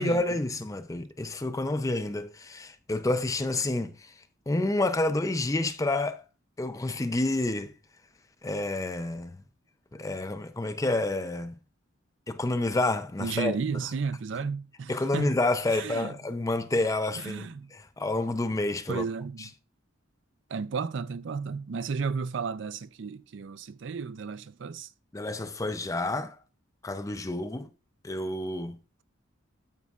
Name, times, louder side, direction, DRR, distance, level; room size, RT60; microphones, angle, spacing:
voice 1, 0.0-4.1 4.5-6.2 6.6-7.7 8.4-9.4 9.9-11.6 12.3-13.6 14.9-19.0 19.4-19.5 25.1-26.4 26.8-27.7 28.0-28.8, left 2 dB, 15° left, 0.5 m, -29 dB
voice 2, 13.2-15.3 15.7-16.1 17.2-17.7 18.9-19.5 20.5-24.9, right 5 dB, 60° right, 0.4 m, -33 dB
9.4 x 8.3 x 2.4 m
head